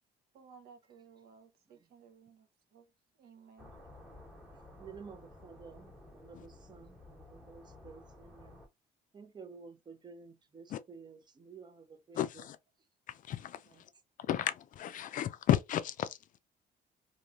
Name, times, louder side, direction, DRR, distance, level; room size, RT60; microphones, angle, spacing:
voice 1, 0.3-3.7, right 6 dB, 65° right, 0.8 m, -58 dB
sound 1, 3.6-8.7, left 2 dB, 5° right, 1.1 m, -54 dB
voice 2, 4.8-8.6 9.1-12.2, right 5 dB, 25° right, 0.6 m, -52 dB
voice 3, 12.1-12.6 13.1-13.9 14.2-16.4, left 11 dB, 50° left, 0.4 m, -34 dB
3.1 x 2.6 x 2.4 m
cardioid pair, 110°, 17 cm